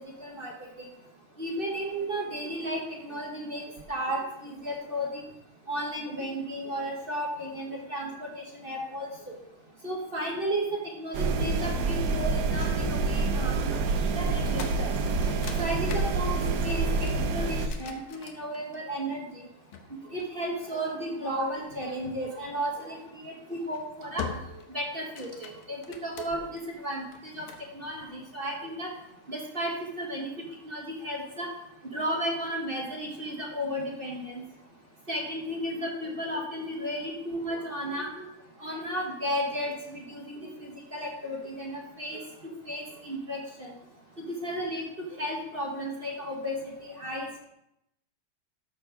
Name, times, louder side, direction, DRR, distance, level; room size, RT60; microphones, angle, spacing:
voice 1, 0.2-0.5 1.4-3.6 3.9-5.2 5.7-9.3 9.8-10.6 11.0-13.7 14.1-14.9 15.6-19.4 20.1-24.2 24.7-27.0 27.3-27.5 27.7-28.9 29.3-30.3 30.6-31.5 31.9-34.4 35.1-38.2 38.6-43.7 44.4-44.8 45.2-47.4, equal, 30° right, -1 dB, 1.2 m, -34 dB
sound 1, 11.1-17.7, right 3 dB, 60° right, 1.1 m, -27 dB
sound 2, 14.3-19.0 19.7-21.0 22.8-23.1 23.6-23.8 24.2-24.7 25.0-26.6 27.1-27.7, left 7 dB, 75° left, 1.8 m, -42 dB
13.0 x 4.5 x 5.0 m, 0.83 s
omnidirectional pair, 2.4 m